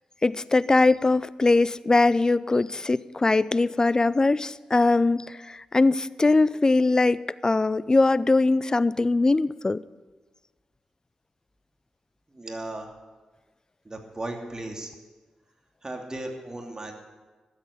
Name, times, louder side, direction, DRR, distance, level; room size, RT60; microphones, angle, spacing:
voice 1, 0.2-9.8, left 3 dB, 30° left, 18 dB, 0.5 m, -21 dB
voice 2, 12.3-12.9 13.8-14.9 15.8-16.9, right 2 dB, 30° right, 2 dB, 2.7 m, -36 dB
13.0 x 7.9 x 8.5 m, 1.3 s
supercardioid pair, 45°, 2 cm